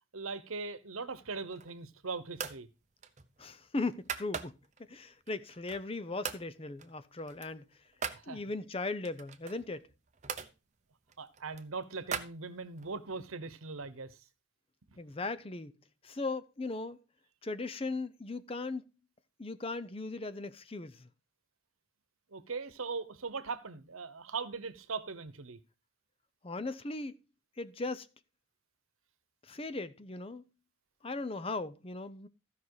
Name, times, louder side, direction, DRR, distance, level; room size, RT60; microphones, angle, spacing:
voice 1, 0.1-2.7 8.1-8.4 11.2-14.2 14.9-15.0 22.3-25.6, right 4 dB, 85° right, 1.0 m, -40 dB
Briefcase Latch close, 1.3-1.9 2.3-2.7 3.0-4.8 5.3-5.9 6.2-6.5 6.8-8.2 9.0-10.5 11.1-12.9, right 6 dB, 35° right, 0.8 m, -41 dB
voice 2, 3.4-4.6 4.9-7.7 8.3-9.9 15.0-15.8 16.0-17.0 17.4-18.8 19.4-21.1 26.4-27.2 27.6-28.1 29.4-30.4 31.0-32.3, left 3 dB, 25° left, 0.6 m, -38 dB
15.0 x 5.6 x 4.8 m
head